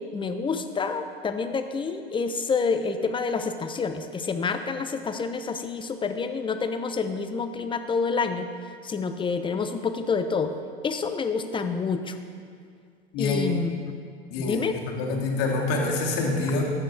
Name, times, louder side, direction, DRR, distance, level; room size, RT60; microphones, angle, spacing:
voice 1, 0.1-8.5 8.8-10.5 10.8-12.2 13.2-13.7 14.4-14.8, left 5 dB, 15° left, 8 dB, 0.7 m, -28 dB
voice 2, 14.3-16.7, left 3 dB, 50° left, -1 dB, 2.4 m, -26 dB
14.0 x 9.7 x 3.3 m, 2.2 s
hypercardioid pair, 85°, 32 cm